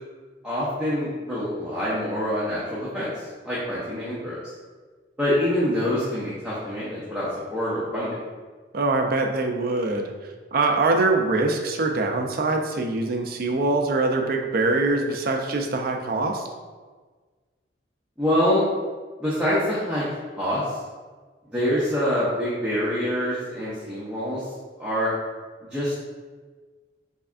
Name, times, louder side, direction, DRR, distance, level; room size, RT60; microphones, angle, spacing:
voice 1, 0.4-3.1 3.4-4.4 5.2-8.2 18.2-18.7 19.2-20.0 20.4-20.8 21.5-24.4 24.8-25.1 25.7-25.9, equal, 5° right, -10 dB, 0.6 m, -25 dB
voice 2, 8.7-10.1 10.5-16.4, right 3 dB, 55° right, 3 dB, 0.4 m, -23 dB
3.5 x 3.3 x 2.4 m, 1.4 s
head